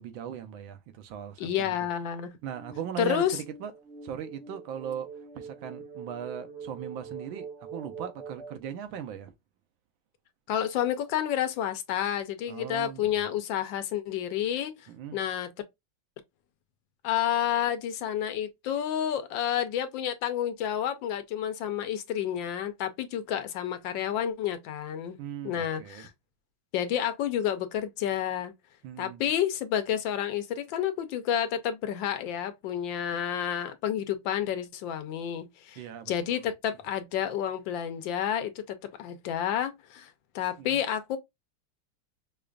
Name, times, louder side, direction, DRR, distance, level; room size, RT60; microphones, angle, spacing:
voice 1, 0.0-1.7 2.4-3.7 4.0-5.1 5.3-9.3 12.5-13.3 14.9-15.2 25.2-26.0 28.8-29.3 35.8-36.4 40.6-40.8, right 9 dB, 85° right, 1.4 m, -39 dB
voice 2, 1.4-2.3 3.0-3.4 10.5-14.7 15.1-15.5 17.0-25.2 25.4-26.1 26.7-28.5 29.0-35.8 36.1-38.6 39.0-41.2, left 10 dB, 75° left, 1.3 m, -30 dB
sound 1, 2.4-8.6, right 5 dB, 50° right, 0.8 m, -44 dB
5.0 x 2.4 x 2.2 m
omnidirectional pair, 2.2 m